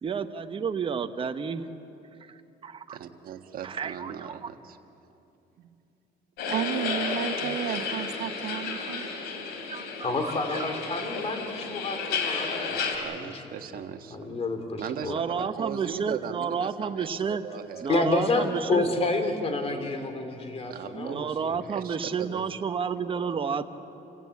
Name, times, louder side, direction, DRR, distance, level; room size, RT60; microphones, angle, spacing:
voice 1, 0.0-1.6 2.2-3.0 3.6-4.5 8.5-8.7 9.7-10.7 15.1-17.4 17.8-18.9 20.2-20.3 20.9-23.7, right 6 dB, 30° right, 7 dB, 1.0 m, -31 dB
voice 2, 2.9-4.8 5.1-5.2 5.6-5.7 7.4-7.6 13.0-14.3 14.8-18.0 18.6-19.0 20.7-21.3 21.7-22.5, right 8 dB, 60° right, 6 dB, 1.5 m, -39 dB
sound 1, 6.4-13.0, left 5 dB, 85° left, 3.2 m, -32 dB
voice 3, 6.5-9.1, right 10 dB, 90° right, 10 dB, 1.1 m, -32 dB
voice 4, 10.0-13.4 14.1-15.2 17.9-21.6, left 3 dB, 35° left, 6 dB, 3.1 m, -29 dB
28.0 x 16.5 x 8.5 m, 2.8 s
cardioid pair, 110°, 17 cm